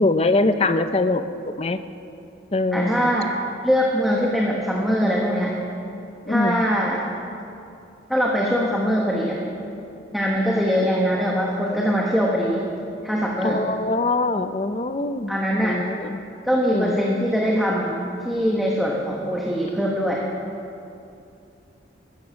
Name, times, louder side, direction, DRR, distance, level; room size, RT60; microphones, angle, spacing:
voice 1, 0.0-1.8 2.5-3.1 6.3-6.6 10.6-10.7 13.4-16.2 16.7-17.0, left 2 dB, 30° left, 10 dB, 0.6 m, -23 dB
voice 2, 2.7-3.3 3.6-5.6 6.3-7.0 8.1-9.4 10.1-12.6 13.0-13.6 15.3-15.8 16.4-18.0 18.2-20.2, equal, ahead, -3 dB, 1.3 m, -22 dB
16.0 x 13.5 x 6.4 m, 2.7 s
head